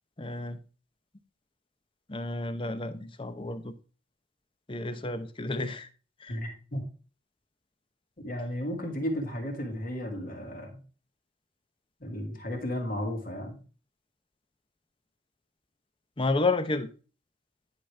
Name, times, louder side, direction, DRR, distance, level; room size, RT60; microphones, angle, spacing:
voice 1, 0.2-0.6 2.1-3.7 4.7-5.9 6.2-6.4 16.2-16.9, left 3 dB, 25° left, 0.7 m, -31 dB
voice 2, 6.3-6.8 8.2-10.8 12.0-13.6, equal, 45° left, 2.2 m, -34 dB
10.5 x 5.1 x 3.3 m
head